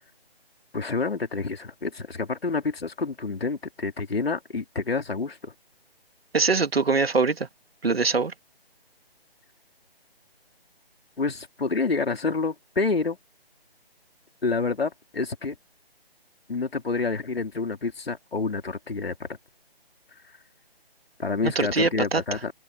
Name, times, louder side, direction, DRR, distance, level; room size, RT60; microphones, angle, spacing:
voice 1, 0.7-5.5 11.2-13.2 14.4-15.6 16.5-19.3 21.2-22.5, left 4 dB, 70° left, 4.2 m, -28 dB
voice 2, 6.3-7.5 7.8-8.3 21.4-22.2, right 4 dB, 70° right, 2.4 m, -23 dB
hypercardioid pair, 180°, 31 cm